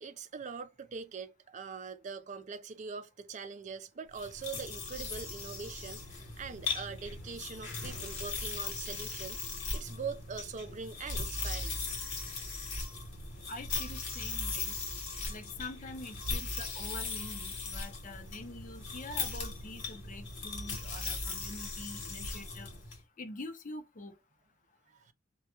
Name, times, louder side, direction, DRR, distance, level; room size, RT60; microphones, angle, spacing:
voice 1, 0.0-6.0 6.4-9.4 9.7-11.8 24.9-25.1, right 5 dB, 40° right, 0.4 m, -42 dB
sound 1, 4.1-23.0, left 3 dB, 70° left, 1.1 m, -38 dB
voice 2, 13.5-14.8 15.3-22.7 23.2-24.2, left 2 dB, 45° left, 0.6 m, -45 dB
2.2 x 2.2 x 2.9 m
head